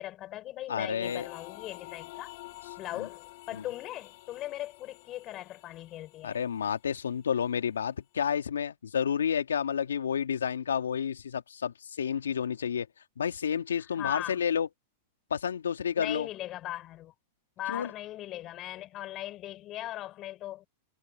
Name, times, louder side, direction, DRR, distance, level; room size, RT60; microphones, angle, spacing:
voice 1, 0.0-2.3 2.8-6.4 13.8-14.4 16.0-17.1 17.6-20.7, left 14 dB, 40° left, 5.5 m, -39 dB
voice 2, 0.7-1.3 3.0-3.1 3.5-3.6 6.2-12.9 13.2-14.7 15.3-16.3 17.7-17.9, left 7 dB, 80° left, 2.5 m, -30 dB
sound 1, 1.0-7.2, left 22 dB, 60° left, 6.6 m, -49 dB
hypercardioid pair, 100°, 0 cm